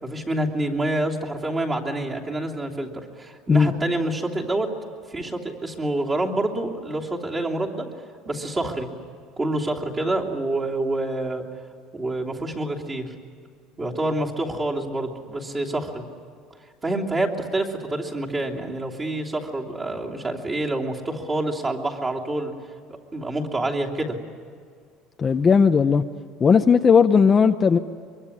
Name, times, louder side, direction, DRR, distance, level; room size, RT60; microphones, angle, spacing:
voice 1, 0.0-2.9 3.2-4.7 5.1-7.8 8.2-8.9 9.4-11.4 11.9-13.1 13.8-16.0 16.8-22.5 22.9-24.1, right 1 dB, 20° right, -2 dB, 3.0 m, -27 dB
voice 2, 25.2-26.0 26.4-27.8, left 6 dB, 25° left, 7 dB, 0.7 m, -16 dB
23.5 x 23.5 x 9.9 m, 2.1 s
cardioid pair, 145°, 0 cm